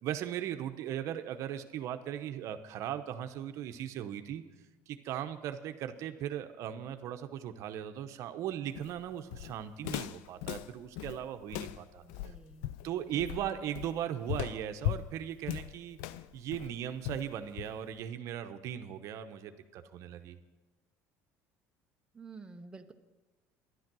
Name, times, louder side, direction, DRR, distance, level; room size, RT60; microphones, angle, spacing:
voice 1, 0.0-4.4 4.9-12.0 12.8-16.0 16.3-20.4, right 10 dB, 60° right, 8 dB, 0.8 m, -38 dB
Walk footsteps, 8.7-18.0, left 13 dB, 85° left, 0.4 m, -39 dB
voice 2, 12.0-13.5 22.1-22.9, right 3 dB, 15° right, 5 dB, 0.8 m, -51 dB
11.5 x 11.5 x 6.1 m, 1.2 s
cardioid pair, 115°, 6 cm